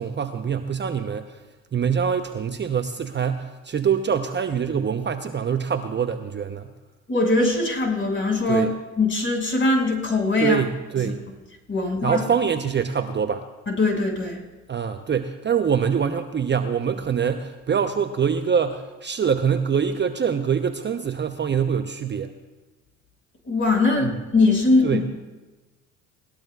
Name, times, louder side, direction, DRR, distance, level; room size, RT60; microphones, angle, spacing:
voice 1, 0.0-1.4 1.7-6.7 8.5-8.7 10.4-11.2 12.0-13.5 14.7-22.3 24.0-24.1 24.8-25.1, right 7 dB, 30° right, 8 dB, 0.9 m, -24 dB
voice 2, 7.1-8.7 9.0-10.6 11.0-11.1 11.7-12.2 13.7-14.4 23.4-25.0, left 2 dB, 30° left, 0 dB, 6.0 m, -21 dB
21.0 x 19.0 x 2.4 m, 1.2 s
hypercardioid pair, 60°, 39 cm